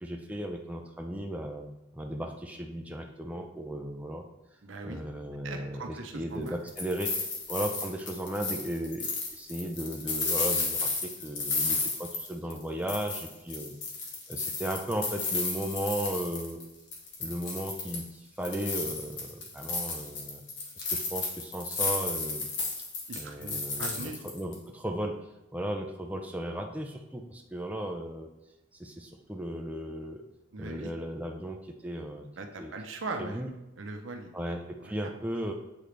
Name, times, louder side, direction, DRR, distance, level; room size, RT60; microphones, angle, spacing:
voice 1, 0.0-1.7 2.0-4.2 4.8-7.1 7.5-9.0 9.4-10.9 11.2-13.7 14.3-16.6 17.2-18.0 18.4-19.3 19.6-20.4 20.9-22.4 23.2-25.1 25.5-27.2 27.5-28.3 28.8-28.9 29.3-30.2 30.6-31.6 31.8-32.3 32.6-32.7 33.2-33.5 34.3-35.5, right 1 dB, 5° right, 2 dB, 0.5 m, -35 dB
voice 2, 4.6-5.0 5.4-6.6 23.1-24.2 30.5-30.9 32.4-33.4 33.8-35.1, right 3 dB, 80° right, 4 dB, 0.8 m, -40 dB
sound 1, 6.5-12.6 12.9-16.6 16.9-18.1 18.4-24.5, left 3 dB, 65° left, 1.4 m, -33 dB
8.4 x 3.8 x 3.3 m, 0.95 s
head